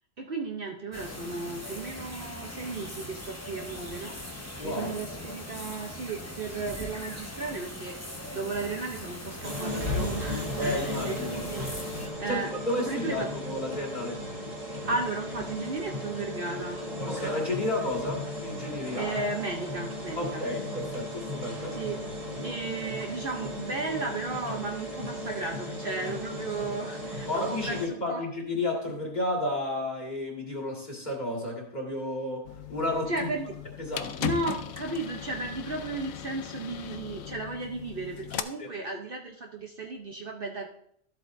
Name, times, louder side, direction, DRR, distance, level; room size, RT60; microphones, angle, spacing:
voice 1, 0.2-11.7 12.2-12.5 12.9-13.3 14.8-16.8 18.9-20.4 21.7-22.0 22.4-28.2 33.1-33.5 34.2-40.7, right 3 dB, 50° right, 1 dB, 0.9 m, -35 dB
sound 1, 0.9-12.1, left 1 dB, 15° left, 1.1 m, -40 dB
voice 2, 4.6-5.2 10.6-11.4 12.3-12.4 12.7-14.2 17.1-19.1 20.2-21.8 27.3-32.4 32.7-33.3 33.8-34.3 38.6-38.7, left 1 dB, 35° left, -1 dB, 2.1 m, -32 dB
sound 2, 9.4-27.9, left 1 dB, 25° right, 1.8 m, -36 dB
sound 3, 32.4-38.4, left 9 dB, 90° left, 1.0 m, -38 dB
13.5 x 8.0 x 2.6 m, 0.70 s
omnidirectional pair, 1.4 m